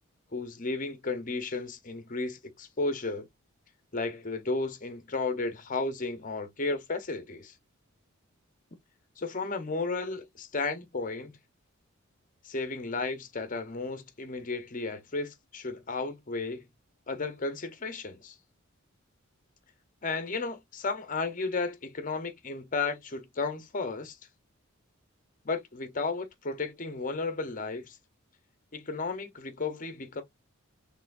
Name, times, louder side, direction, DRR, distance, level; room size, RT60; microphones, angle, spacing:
voice 1, 0.3-3.3 3.9-7.5 9.2-11.3 12.4-16.6 17.1-18.4 20.0-24.2 25.4-28.0 28.7-30.2, left 3 dB, 40° left, 0.8 m, -33 dB
5.4 x 3.3 x 2.5 m
head